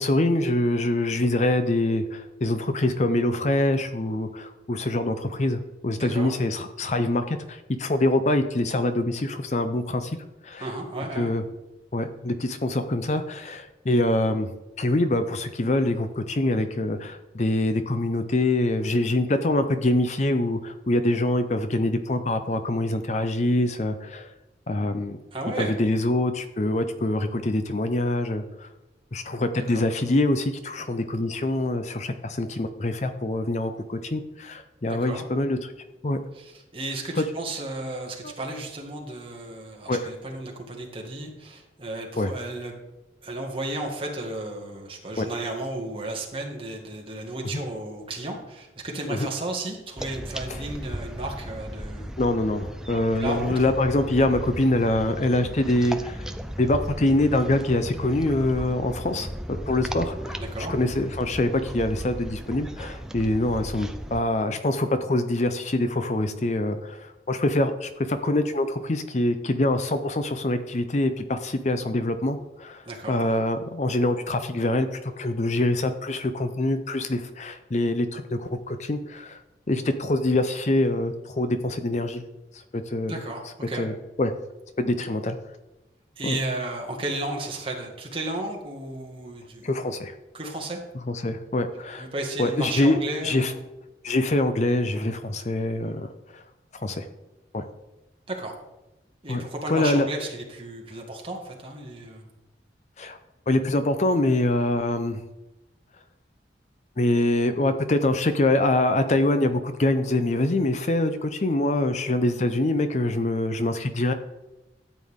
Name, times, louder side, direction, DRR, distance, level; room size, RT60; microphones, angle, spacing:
voice 1, 0.0-10.2 10.4-10.7 11.1-11.4 11.9-14.5 14.8-24.3 24.7-25.2 25.6-28.7 29.1-35.7 36.0-36.2 37.2-37.3 38.2-38.3 39.9-40.1 42.2-42.3 45.2-45.3 47.5-47.6 49.1-49.2 50.5-50.6 52.2-56.3 56.6-79.4 79.7-82.2 82.5-83.1 83.8-84.3 84.8-85.4 86.2-86.4 89.6-90.1 91.1-92.1 92.4-93.5 94.0-96.4 96.7-97.1 97.5-97.6 99.3-99.4 99.7-100.1 103.0-103.2 103.5-105.2 107.0-114.1, left 1 dB, 40° left, 9 dB, 0.6 m, -25 dB
voice 2, 6.0-6.3 10.6-11.3 25.3-25.8 29.7-29.9 34.9-35.3 36.3-42.7 43.2-52.1 53.2-53.6 60.4-60.7 72.9-73.2 83.1-83.8 86.2-89.7 90.3-90.8 92.0-93.6 98.3-98.5 99.2-102.3, right 2 dB, 30° right, 0 dB, 1.9 m, -33 dB
sound 1, 50.0-64.2, equal, 5° right, 0.5 m, -36 dB
13.0 x 8.3 x 3.6 m, 1.0 s
head